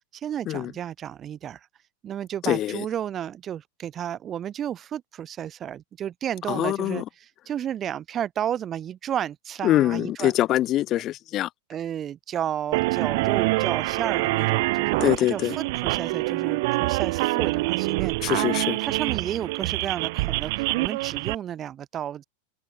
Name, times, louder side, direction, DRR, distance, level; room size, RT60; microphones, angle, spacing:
voice 1, 0.1-1.6 2.0-10.3 11.7-18.3 18.8-22.2, right 10 dB, 25° right, 2.5 m, -32 dB
voice 2, 2.4-2.8 6.5-7.0 9.6-11.5 15.0-15.6 18.2-18.8, left 14 dB, 35° left, 1.9 m, -24 dB
sound 1, 12.7-21.4, right 23 dB, 50° right, 0.9 m, -25 dB
figure-of-eight pair, 90°, 0 cm